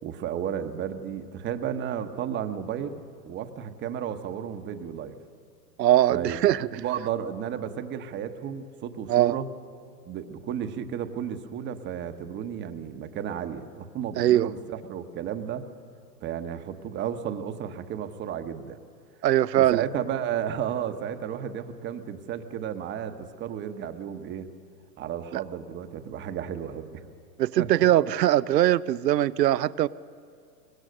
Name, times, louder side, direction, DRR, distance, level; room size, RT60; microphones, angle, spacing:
voice 1, 0.0-5.2 6.1-9.5 10.1-15.6 16.2-18.8 19.5-24.5 25.0-27.1 27.6-27.7, right 9 dB, 25° right, 8 dB, 1.1 m, -33 dB
voice 2, 5.8-6.7 9.1-9.3 14.2-14.5 19.2-19.8 25.3-25.4 27.4-29.9, right 13 dB, 80° right, 18 dB, 0.7 m, -21 dB
24.0 x 20.5 x 6.5 m, 2.3 s
hypercardioid pair, 125°, 49 cm